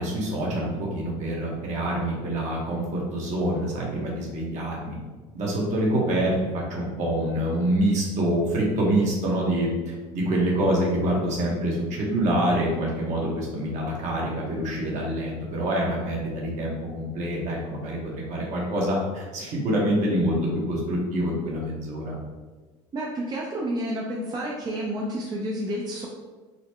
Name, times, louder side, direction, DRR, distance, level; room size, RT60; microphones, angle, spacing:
voice 1, 0.0-5.0 5.3-6.3 6.7-22.2, right 1 dB, 55° right, -3 dB, 1.2 m, -26 dB
voice 2, 22.9-26.1, right 1 dB, 30° right, -3 dB, 0.6 m, -30 dB
3.9 x 2.1 x 3.0 m, 1.3 s
supercardioid pair, 90°, 14 cm